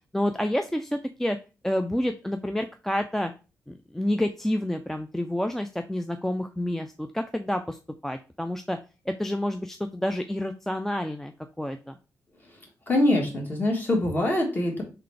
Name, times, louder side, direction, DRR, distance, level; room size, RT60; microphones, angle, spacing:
voice 1, 0.1-1.4 1.6-3.3 3.7-7.8 8.0-8.8 9.1-11.3 11.6-12.0, left 1 dB, 5° left, 6 dB, 0.3 m, -29 dB
voice 2, 12.9-14.8, left 1 dB, 30° left, 0 dB, 1.5 m, -24 dB
3.9 x 3.3 x 3.3 m, 0.32 s
cardioid pair, 110°, 6 cm